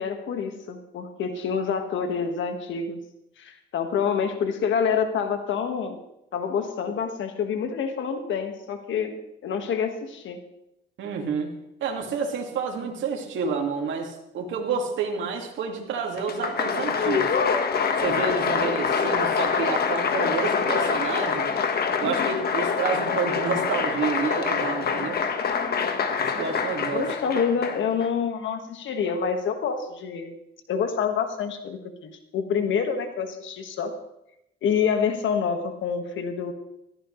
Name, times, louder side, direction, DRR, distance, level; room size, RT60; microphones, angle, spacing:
voice 1, 0.0-3.0 3.4-6.0 6.3-9.2 9.4-10.4 26.9-30.3 30.7-33.9 34.6-36.5, left 6 dB, 70° left, 6 dB, 1.8 m, -27 dB
voice 2, 11.0-11.5 11.8-17.3 18.0-21.5 22.0-25.2 26.4-27.0, right 5 dB, 75° right, 1 dB, 2.3 m, -29 dB
Applause, 16.2-28.1, left 5 dB, 50° left, 1.6 m, -25 dB
16.0 x 13.5 x 3.3 m, 0.84 s
cardioid pair, 90°, 20 cm